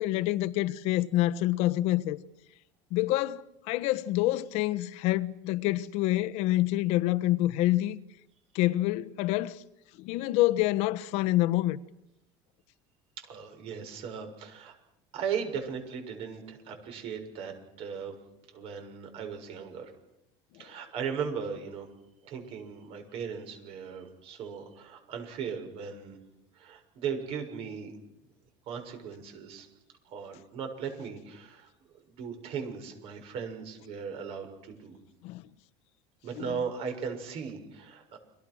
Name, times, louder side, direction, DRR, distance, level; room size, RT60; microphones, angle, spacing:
voice 1, 0.0-2.2 2.9-8.0 8.5-9.6 10.0-11.8 35.2-35.4 36.4-36.5, left 16 dB, 65° left, 1.2 m, -27 dB
voice 2, 13.2-14.7 15.1-18.2 18.5-19.9 20.6-21.9 22.2-26.2 26.5-27.9 28.7-29.7 30.0-35.0 36.2-38.2, right 6 dB, 55° right, 6.7 m, -37 dB
29.5 x 23.5 x 6.4 m
supercardioid pair, 125°, 12 cm